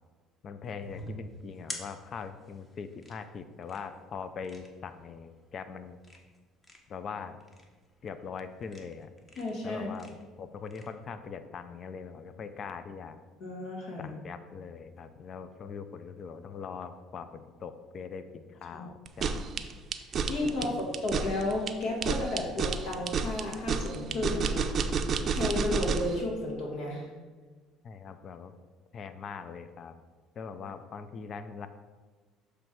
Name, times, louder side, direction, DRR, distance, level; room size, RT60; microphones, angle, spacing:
voice 1, 0.4-6.0 6.9-7.4 8.0-9.1 9.6-13.2 14.0-19.4 20.4-20.8 27.8-28.5 28.9-30.0 30.4-31.7, left 5 dB, 45° left, 10 dB, 0.5 m, -41 dB
sound 1, 0.6-10.9, left 1 dB, 25° left, 1.2 m, -49 dB
voice 2, 9.4-9.9 13.4-14.1 18.7-18.8 20.3-20.7 21.0-24.7 25.3-27.1, left 2 dB, 70° left, -1 dB, 1.9 m, -32 dB
sound 2, 19.1-26.2, right 5 dB, 45° right, 0.5 m, -30 dB
6.9 x 3.3 x 6.0 m, 1.3 s
supercardioid pair, 90°, 0 cm